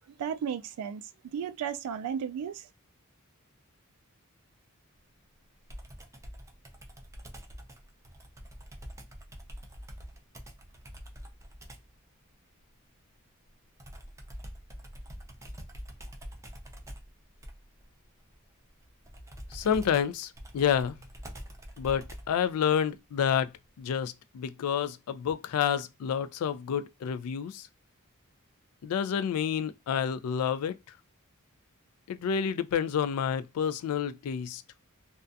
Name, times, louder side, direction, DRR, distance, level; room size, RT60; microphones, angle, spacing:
voice 1, 0.1-2.7, right 7 dB, 90° right, 0.3 m, -34 dB
Computer keyboard, 5.7-12.0 13.8-22.4, equal, 15° right, 0.5 m, -45 dB
voice 2, 19.5-21.0 21.8-23.5 23.8-27.7 28.8-30.8 32.1-34.6, left 8 dB, 80° left, 0.3 m, -29 dB
2.4 x 2.2 x 2.5 m
head